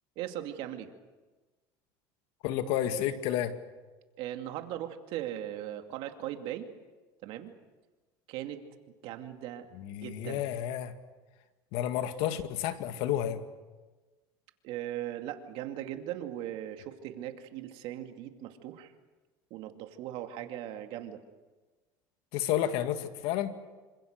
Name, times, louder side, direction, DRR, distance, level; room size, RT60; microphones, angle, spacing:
voice 1, 0.2-0.9 4.2-6.7 7.2-7.5 8.3-8.6 9.0-9.6 10.0-10.4 14.6-18.9 19.5-21.2, right 12 dB, 65° right, 6 dB, 2.4 m, -39 dB
voice 2, 2.4-3.6 9.7-10.9 11.7-13.4 22.3-23.5, left 11 dB, 70° left, 8 dB, 2.1 m, -31 dB
27.0 x 26.0 x 6.7 m, 1.3 s
supercardioid pair, 120°, 10 cm